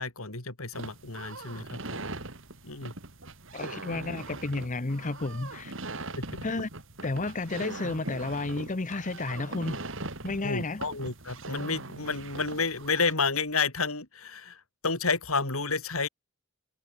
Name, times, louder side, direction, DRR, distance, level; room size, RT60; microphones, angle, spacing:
voice 1, 0.0-2.1 2.6-2.9 6.2-6.4 10.4-16.1, left 4 dB, 85° left, 4.9 m, -31 dB
sound 1, 0.7-13.1, right 2 dB, 65° right, 5.0 m, -41 dB
voice 2, 3.5-5.8 6.4-6.7 7.0-9.8 10.2-10.8, left 3 dB, 35° left, 0.9 m, -32 dB
head